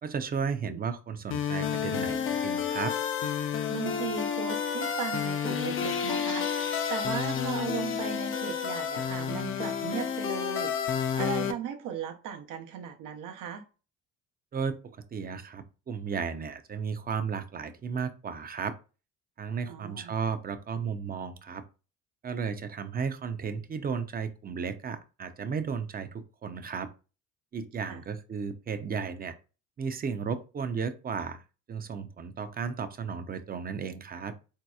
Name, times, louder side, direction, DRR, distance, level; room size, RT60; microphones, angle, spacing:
voice 1, 0.0-3.0 14.5-18.7 19.4-21.6 22.2-26.9 27.5-29.3 29.8-31.4 31.7-34.3, right 6 dB, 30° right, 0.5 m, -34 dB
sound 1, 1.3-11.5, left 7 dB, 40° left, 0.5 m, -30 dB
voice 2, 3.7-6.5 6.9-13.6 19.7-20.1 27.8-28.0, right 8 dB, 85° right, 0.8 m, -37 dB
3.9 x 2.8 x 2.3 m
cardioid pair, 90°, 32 cm